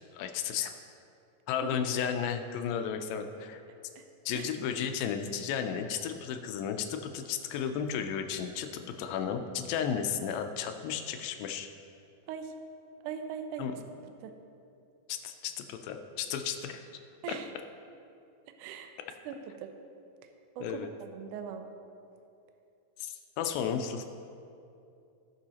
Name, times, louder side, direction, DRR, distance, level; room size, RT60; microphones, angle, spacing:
voice 1, 0.1-0.7 1.5-3.6 4.3-11.7 13.6-13.7 15.1-16.8 17.3-17.4 20.6-20.9 23.0-24.0, left 8 dB, 85° left, 6 dB, 2.4 m, -33 dB
voice 2, 13.0-13.8 14.2-14.3 17.2-17.5 18.6-18.9 19.3-19.7 20.6-21.6, right 7 dB, 80° right, 6 dB, 1.8 m, -40 dB
18.0 x 6.2 x 2.9 m, 2.6 s
omnidirectional pair, 4.1 m